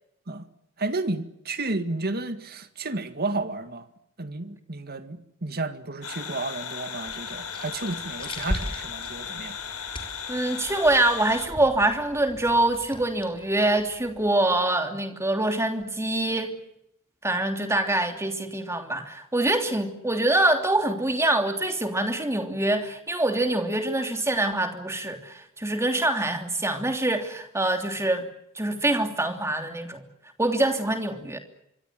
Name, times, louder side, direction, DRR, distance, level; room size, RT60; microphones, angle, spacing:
voice 1, 0.8-3.9 4.2-9.6, right 2 dB, 45° right, 2.0 m, -32 dB
sound 1, 6.0-11.5, left 7 dB, 80° left, 5.5 m, -36 dB
sound 2, 7.0-14.3, left 1 dB, 25° left, 4.8 m, -39 dB
voice 2, 10.3-16.5 17.2-28.3 28.5-30.0 30.4-31.4, right 1 dB, 10° right, 3.0 m, -25 dB
26.0 x 24.5 x 7.6 m
head